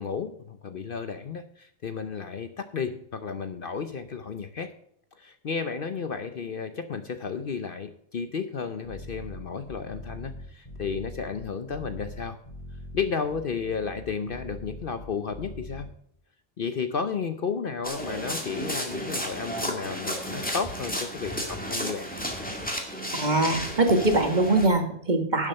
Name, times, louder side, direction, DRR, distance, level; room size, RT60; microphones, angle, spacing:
voice 1, 0.0-4.7 5.2-12.4 12.9-15.9 16.6-22.1, left 5 dB, 50° left, 9 dB, 0.8 m, -33 dB
sound 1, 8.8-15.8, left 1 dB, 25° left, 4.7 m, -42 dB
sound 2, 17.8-24.7, equal, 5° left, 2.1 m, -33 dB
voice 2, 23.1-25.5, right 2 dB, 35° right, 5 dB, 1.7 m, -23 dB
12.0 x 7.3 x 5.6 m, 0.68 s
omnidirectional pair, 1.3 m